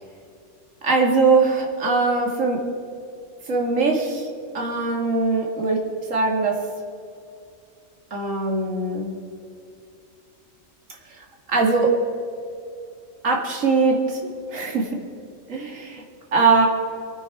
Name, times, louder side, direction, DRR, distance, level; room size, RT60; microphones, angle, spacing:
voice 1, 0.8-2.6 3.5-4.3 4.5-6.6 8.1-9.1 11.5-11.9 13.2-14.2 14.5-15.0 15.5-16.0 16.3-16.7, right 4 dB, 75° right, 0 dB, 2.4 m, -21 dB
25.5 x 9.3 x 4.8 m, 2.5 s
omnidirectional pair, 1.3 m